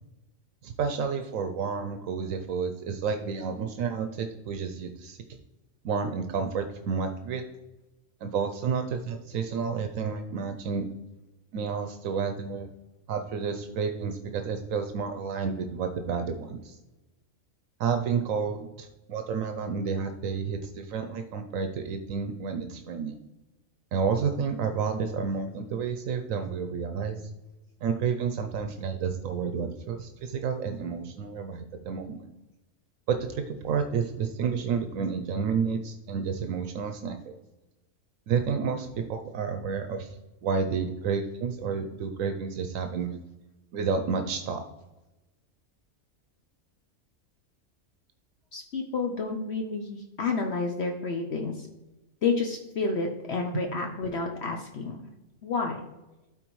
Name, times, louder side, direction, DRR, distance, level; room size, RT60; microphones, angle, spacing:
voice 1, 0.6-5.2 5.8-7.4 8.2-10.9 11.5-12.7 13.1-16.8 17.8-23.2 23.9-27.2 27.8-32.2 33.1-37.3 38.3-40.2 40.4-43.2 43.7-44.6 53.5-53.6, right 6 dB, 80° right, 7 dB, 1.0 m, -30 dB
voice 2, 48.5-51.7 52.2-55.0 55.4-55.8, left 4 dB, 60° left, 3 dB, 1.0 m, -30 dB
12.5 x 4.2 x 3.1 m, 1.0 s
omnidirectional pair, 1.4 m